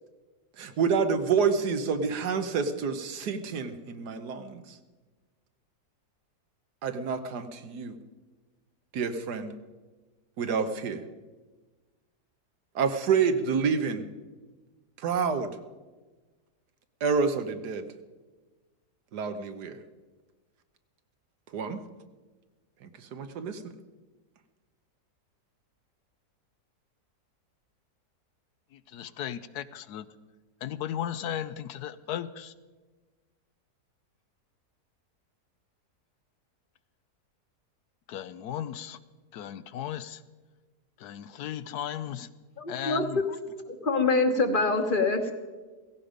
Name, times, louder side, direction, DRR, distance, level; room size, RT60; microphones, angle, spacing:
voice 1, 0.6-4.8 6.8-8.0 8.9-9.5 10.4-11.0 12.7-14.0 15.0-15.5 17.0-17.8 19.1-19.8 21.5-21.8 22.8-23.7, right 5 dB, 85° right, 9 dB, 1.6 m, -28 dB
voice 2, 28.7-30.1 30.6-32.5 38.1-39.0 39.3-40.2 41.0-42.3 42.7-43.2, left 10 dB, 80° left, 14 dB, 1.2 m, -36 dB
voice 3, 42.6-43.2 43.7-45.3, left 3 dB, 35° left, 7 dB, 1.3 m, -25 dB
16.5 x 16.5 x 5.1 m, 1.3 s
omnidirectional pair, 1.7 m